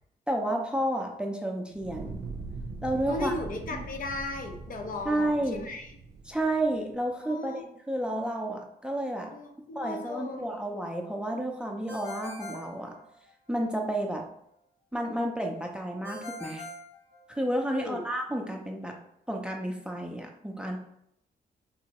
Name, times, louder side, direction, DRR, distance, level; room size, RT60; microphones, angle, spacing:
voice 1, 0.3-2.2 2.8-3.3 5.0-5.7 6.3-9.3 9.8-12.9 13.5-14.2 14.9-16.7 17.3-19.0 19.3-20.8, right 1 dB, 5° right, 1 dB, 0.4 m, -31 dB
Fire, 1.7-6.9, right 3 dB, 90° right, 0.4 m, -41 dB
voice 2, 3.1-5.9 7.2-7.6 9.3-10.6 17.7-18.0, left 3 dB, 55° left, 3 dB, 0.6 m, -36 dB
Ringtone, 11.9-13.5 16.0-17.7, left 1 dB, 80° left, 1.0 m, -43 dB
3.7 x 2.2 x 2.8 m, 0.75 s
cardioid pair, 90°, 17 cm